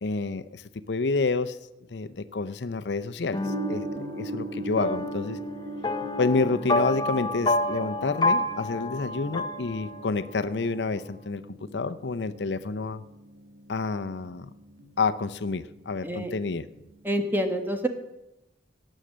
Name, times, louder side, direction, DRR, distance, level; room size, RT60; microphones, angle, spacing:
voice 1, 0.0-1.6 1.9-3.9 4.1-5.4 6.2-11.4 11.7-13.0 13.7-14.5 15.0-16.7, left 3 dB, 75° left, 12 dB, 0.6 m, -29 dB
sound 1, 3.3-10.3, left 2 dB, 25° left, 0.7 m, -29 dB
Gong, 3.4-17.2, right 1 dB, 70° right, 2.2 m, -41 dB
voice 2, 17.0-17.9, right 1 dB, 10° right, 6 dB, 1.3 m, -27 dB
18.0 x 6.4 x 7.4 m, 0.91 s
head